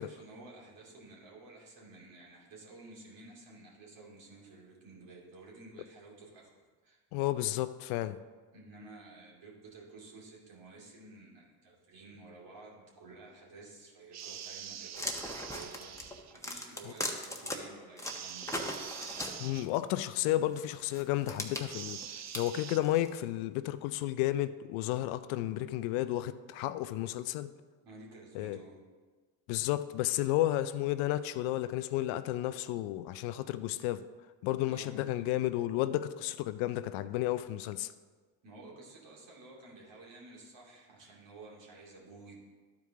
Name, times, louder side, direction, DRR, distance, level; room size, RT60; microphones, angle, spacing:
voice 1, 0.0-6.6 6.8-7.0 8.5-18.5 27.8-28.8 34.6-35.3 38.4-42.4, right 2 dB, 65° right, -3 dB, 2.7 m, -52 dB
voice 2, 7.1-8.2 19.4-22.0 22.3-27.5 28.3-28.6 29.5-34.1 34.4-37.9, left 14 dB, 80° left, 13 dB, 0.5 m, -32 dB
sound 1, 14.1-16.3 18.0-19.7 21.7-22.8, right 9 dB, 35° right, 0.5 m, -44 dB
sound 2, 14.9-17.6 18.0-19.8 20.5-23.2, left 1 dB, 5° left, 1.1 m, -39 dB
12.0 x 4.7 x 3.7 m, 1.4 s
supercardioid pair, 65°, 48 cm